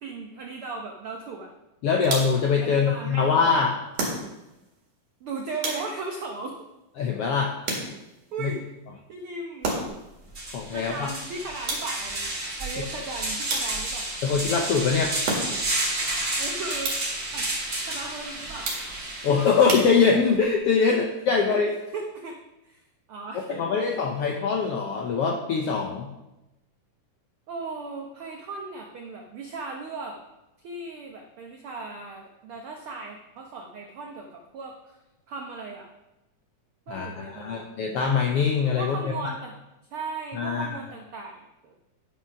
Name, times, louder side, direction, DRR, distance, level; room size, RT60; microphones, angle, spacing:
voice 1, 0.0-1.5 2.6-3.5 5.2-6.5 8.3-8.7 9.1-9.7 10.7-12.3 12.6-14.1 16.4-16.9 17.3-17.5 17.8-18.7 20.9-21.0 21.5-21.6 21.9-22.4 22.6-22.8 23.1-23.9 27.5-30.2 30.6-35.0 35.3-35.9 36.9-37.7 38.8-39.5 39.9-41.8, right 3 dB, 80° right, 1 dB, 1.2 m, -37 dB
voice 2, 1.8-3.7 7.0-7.5 8.4-8.5 10.5-11.1 14.2-15.1 19.2-21.7 23.5-26.1 36.9-39.3 40.3-40.7, left 5 dB, 80° left, 0 dB, 1.3 m, -23 dB
sound 1, 2.0-2.6 4.0-4.6 5.6-6.2 7.7-8.3 9.6-10.1 11.7-12.2 13.5-14.1 15.3-15.8 16.8-17.3 18.6-19.2 19.7-20.4, right 2 dB, 55° right, 3.0 m, -32 dB
sound 2, 9.9-10.0 10.3-19.9, right 2 dB, 25° right, 2.3 m, -31 dB
9.4 x 6.0 x 5.7 m, 0.96 s
omnidirectional pair, 3.7 m